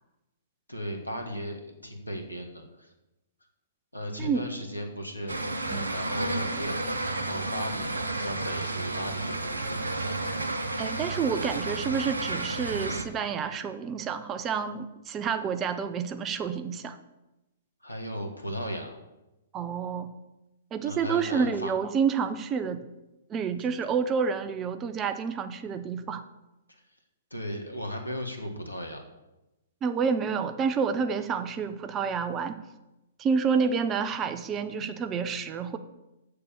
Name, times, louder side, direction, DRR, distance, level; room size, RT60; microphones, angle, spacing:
voice 1, 0.7-2.9 3.9-5.3 5.7-10.1 17.8-19.0 20.8-21.7 26.7-26.8 27.3-29.0, equal, 90° left, 3 dB, 1.5 m, -36 dB
voice 2, 4.2-4.5 5.7-5.9 10.8-17.0 19.5-20.1 20.7-22.9 23.3-26.2 29.8-32.6 33.2-35.8, right 6 dB, 20° right, 10 dB, 0.7 m, -29 dB
sound 1, 5.3-13.0, right 2 dB, 75° right, 0.9 m, -31 dB
6.9 x 6.8 x 7.0 m, 0.99 s
figure-of-eight pair, 115°, 0 cm